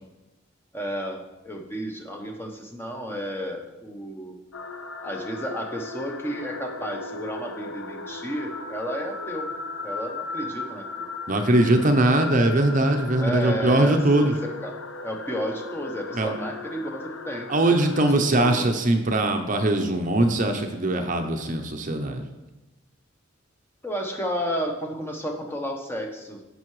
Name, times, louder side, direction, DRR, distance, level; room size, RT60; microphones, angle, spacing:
voice 1, 0.7-4.4 5.0-9.5 9.8-11.1 13.1-17.5 18.3-18.7 23.8-26.4, equal, 10° left, 2 dB, 0.8 m, -32 dB
sound 1, 4.5-18.1, left 3 dB, 85° left, 0.7 m, -37 dB
voice 2, 11.3-14.3 16.1-16.3 17.5-22.2, right 1 dB, 40° right, 5 dB, 0.7 m, -21 dB
14.5 x 5.5 x 3.2 m, 1.0 s
head